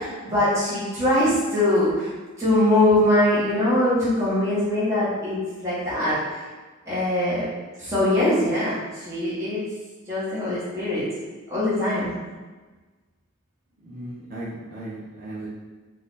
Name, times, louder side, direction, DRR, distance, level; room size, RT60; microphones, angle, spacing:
voice 1, 0.0-2.1 2.4-6.4 6.9-7.5 7.8-9.6 10.1-11.0 11.5-12.1, left 1 dB, 15° right, -12 dB, 1.4 m, -22 dB
voice 2, 13.8-15.5, right 1 dB, 45° right, -8 dB, 1.0 m, -36 dB
4.1 x 2.7 x 4.1 m, 1.3 s
head